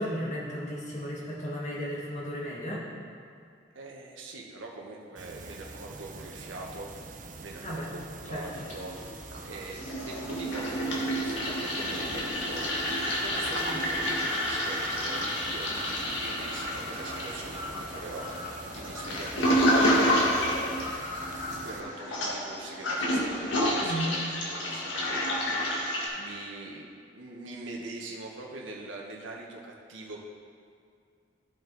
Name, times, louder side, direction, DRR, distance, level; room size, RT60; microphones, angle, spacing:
voice 1, 0.0-2.8 7.6-7.9 8.3-8.4 13.6-13.9 23.8-24.1, equal, 35° left, -5 dB, 1.7 m, -34 dB
voice 2, 3.7-12.7 13.0-20.7 21.6-26.9 27.1-30.2, right 2 dB, 85° right, -1 dB, 1.2 m, -43 dB
sound 1, 5.2-21.8, right 3 dB, 40° right, 0.5 m, -44 dB
Toilet flush, 8.5-9.3 9.6-26.1, equal, 80° left, 1.6 m, -29 dB
14.0 x 4.7 x 4.1 m, 2.3 s
head